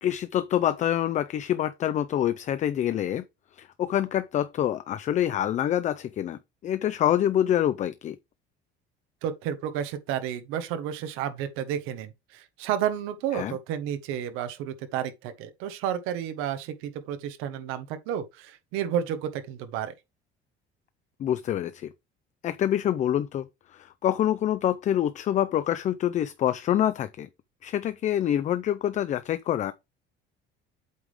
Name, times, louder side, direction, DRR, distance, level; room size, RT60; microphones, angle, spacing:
voice 1, 0.0-3.2 3.6-8.2 13.3-13.6 21.2-21.9 22.4-27.3 27.6-29.7, left 11 dB, 35° left, 0.5 m, -26 dB
voice 2, 9.2-19.9, right 9 dB, 90° right, 1.3 m, -31 dB
8.2 x 3.6 x 4.9 m
cardioid pair, 150°, 21 cm